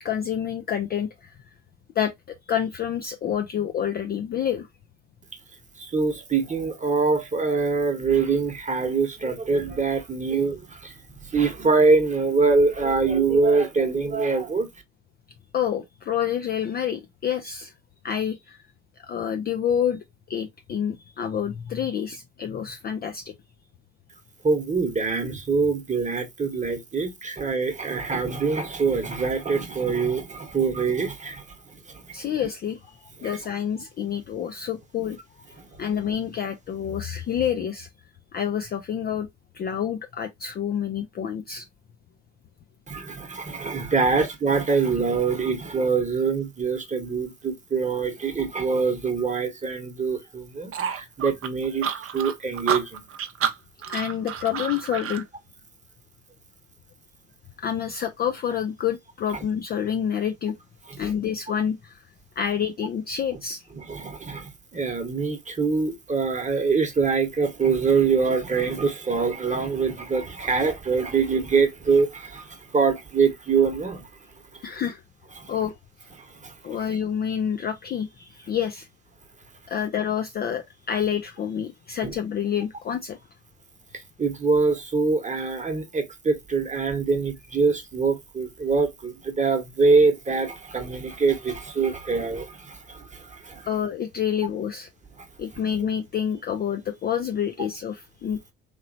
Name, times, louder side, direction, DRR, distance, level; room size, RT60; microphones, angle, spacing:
voice 1, 0.0-1.4 2.0-4.7 15.5-17.7 18.0-18.6 19.0-23.3 32.1-37.9 38.3-39.3 39.5-41.7 53.9-55.2 57.6-60.6 60.9-62.1 62.4-63.7 74.6-75.0 75.5-75.7 76.6-78.9 79.7-83.2 93.6-94.9 95.4-98.4, left 8 dB, 25° left, 0.4 m, -28 dB
voice 2, 5.8-10.9 11.2-14.7 24.4-32.0 33.2-33.4 35.6-35.8 42.9-53.0 60.9-61.0 63.8-74.1 74.5-74.6 75.4-75.5 76.2-76.5 82.0-82.1 83.9-93.7 95.2-95.3, right 4 dB, 20° right, 1.0 m, -24 dB
sound 1, 50.7-55.2, right 8 dB, 35° right, 0.6 m, -29 dB
3.0 x 2.8 x 2.5 m
hypercardioid pair, 60°, 38 cm